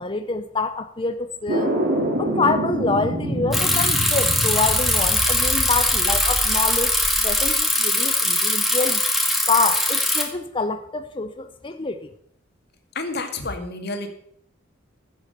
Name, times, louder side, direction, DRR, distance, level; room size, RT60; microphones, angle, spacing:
voice 1, 0.0-1.8 2.2-6.9 7.2-9.0 9.5-12.1, left 3 dB, 25° left, 0.7 m, -26 dB
sound 1, 1.5-7.5, right 1 dB, 45° right, 3.6 m, -27 dB
Bicycle, 3.5-10.2, left 1 dB, ahead, 2.0 m, -21 dB
voice 2, 12.9-14.1, left 2 dB, 55° left, 2.1 m, -29 dB
14.5 x 7.8 x 6.7 m
head